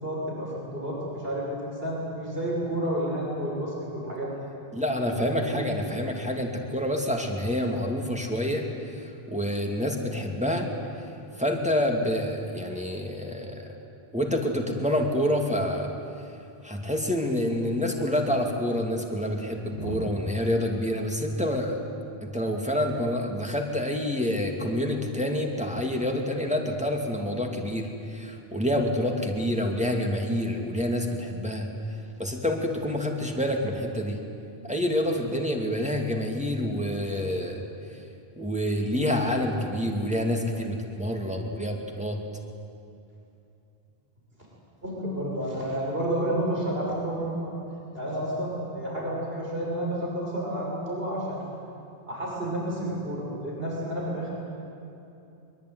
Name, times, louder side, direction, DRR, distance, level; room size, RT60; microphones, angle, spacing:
voice 1, 0.0-4.3 5.2-5.7 19.8-20.1 44.8-47.5 47.9-51.4 52.1-54.3, right 1 dB, 70° right, -4 dB, 7.1 m, -30 dB
voice 2, 4.7-8.6 8.9-10.7 11.4-13.7 14.1-15.9 16.6-21.8 22.2-31.7 32.2-34.2 34.6-37.6 38.4-42.2, left 1 dB, 5° right, 1 dB, 2.6 m, -27 dB
23.5 x 23.0 x 9.6 m, 2.7 s
omnidirectional pair, 1.0 m